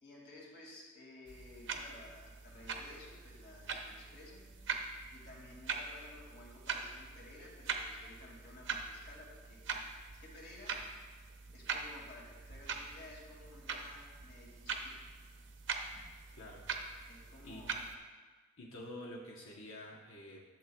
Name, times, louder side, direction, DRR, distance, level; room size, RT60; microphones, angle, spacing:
voice 1, 0.0-4.5 5.1-10.8 11.5-15.0 17.1-17.8, left 2 dB, 55° left, -3 dB, 2.1 m, -55 dB
sound 1, 1.3-18.0, right 5 dB, 60° right, 0.7 m, -43 dB
voice 2, 16.3-16.7 17.4-17.6 18.6-20.4, left 1 dB, 90° left, -2 dB, 0.9 m, -48 dB
12.0 x 7.3 x 2.3 m, 1.3 s
head